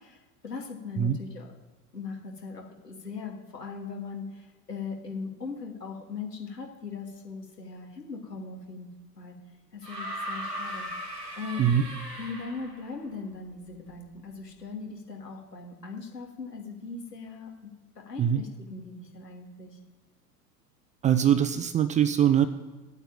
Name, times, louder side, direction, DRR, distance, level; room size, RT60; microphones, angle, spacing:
voice 1, 0.0-1.5 1.9-9.3 9.7-11.7 12.2-19.8, left 4 dB, 80° left, 0 dB, 2.8 m, -40 dB
sound 1, 9.8-12.9 14.1-14.2, equal, 90° right, 2.2 m, -37 dB
voice 2, 21.0-22.5, right 9 dB, 15° right, 10 dB, 0.5 m, -22 dB
8.8 x 8.0 x 9.1 m, 1.2 s
figure-of-eight pair, 85°, 48 cm